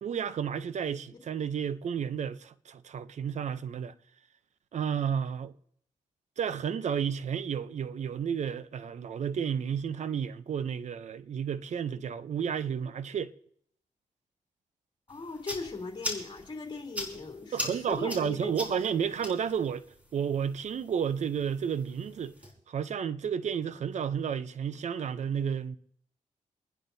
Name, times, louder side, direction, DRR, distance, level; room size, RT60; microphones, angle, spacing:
voice 1, 0.0-3.9 4.7-5.5 6.4-13.3 17.5-19.8 20.1-22.3 22.7-25.8, right 7 dB, 65° right, 0.6 m, -32 dB
voice 2, 15.1-18.7, left 3 dB, 35° left, 3.4 m, -39 dB
sound 1, 15.1-22.5, left 1 dB, 10° right, 4.8 m, -42 dB
28.5 x 10.5 x 2.7 m
cardioid pair, 80°, 13 cm